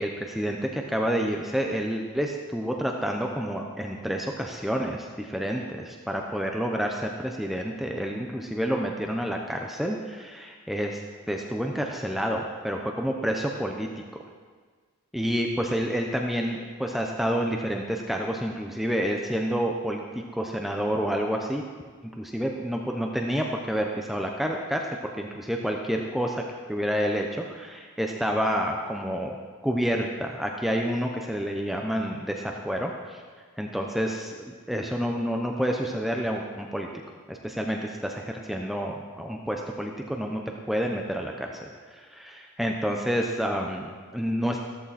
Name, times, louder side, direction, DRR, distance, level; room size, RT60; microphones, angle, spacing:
voice 1, 0.0-11.0 11.3-13.9 15.1-21.6 22.2-24.9 25.2-26.4 26.7-29.4 29.6-33.2 33.6-36.9 37.3-40.4 40.7-44.6, equal, ahead, 1 dB, 0.8 m, -29 dB
14.5 x 13.5 x 4.2 m, 1.5 s
head